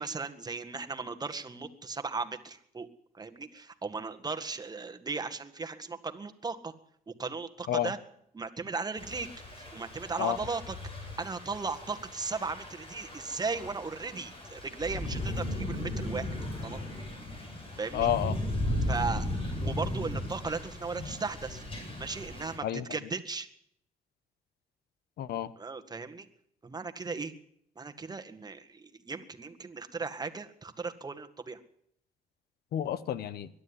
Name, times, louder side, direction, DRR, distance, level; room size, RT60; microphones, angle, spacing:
voice 1, 0.0-2.9 3.1-6.7 7.1-8.0 8.3-9.3 9.7-10.8 11.2-16.3 16.6-16.8 17.8-18.1 18.9-19.3 19.6-21.6 22.0-23.5 25.6-26.3 26.6-27.3 27.8-31.6, right 4 dB, 25° right, 7 dB, 1.8 m, -36 dB
Thunder / Rain, 9.0-22.6, left 1 dB, 35° left, 7.6 m, -36 dB
voice 2, 17.9-18.4 22.6-22.8 25.2-25.5 32.7-33.5, left 11 dB, 85° left, 16 dB, 1.2 m, -30 dB
22.0 x 12.0 x 9.9 m, 0.70 s
cardioid pair, 110°, 16 cm